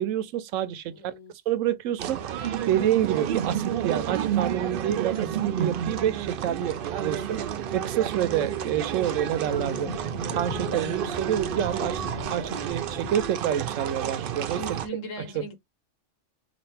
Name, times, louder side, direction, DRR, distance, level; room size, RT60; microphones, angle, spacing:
voice 1, 0.0-1.1 1.5-9.9 10.3-14.8, right 10 dB, 85° right, 1.0 m, -28 dB
voice 2, 0.9-1.3 12.1-12.5 14.5-15.6, equal, 85° left, 1.5 m, -39 dB
sound 1, 2.0-14.9, right 9 dB, 60° right, 0.6 m, -30 dB
Thunder, 6.7-13.3, left 6 dB, 45° left, 0.5 m, -42 dB
4.1 x 2.5 x 3.3 m
omnidirectional pair, 1.3 m